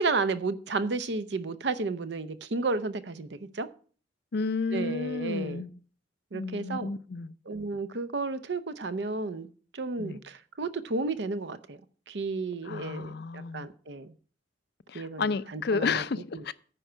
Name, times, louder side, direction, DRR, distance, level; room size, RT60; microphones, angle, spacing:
voice 1, 0.0-3.7 4.7-5.6 6.3-6.9 7.5-9.5 9.7-11.8 12.1-14.1 14.9-16.0 16.3-16.5, right 3 dB, 65° right, 0.7 m, -32 dB
voice 2, 4.3-5.7 6.3-7.3 10.0-10.2 12.6-13.7 14.9-16.5, left 4 dB, 60° left, 0.5 m, -31 dB
9.9 x 4.5 x 7.4 m
head